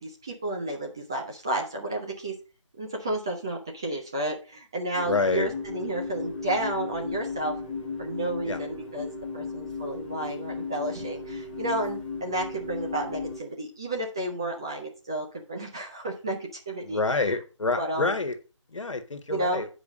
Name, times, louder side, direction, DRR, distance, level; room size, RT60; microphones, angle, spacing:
voice 1, 0.0-2.4 2.8-7.5 8.0-17.3 17.8-18.1 19.3-19.7, right 1 dB, 10° right, 0.4 m, -32 dB
sound 1, 5.0-13.4, left 4 dB, 15° left, 1.1 m, -36 dB
voice 2, 5.1-5.5 8.4-8.6 16.8-18.4 18.7-19.7, left 3 dB, 70° left, 1.5 m, -27 dB
8.4 x 4.9 x 5.1 m
figure-of-eight pair, 155°, 16 cm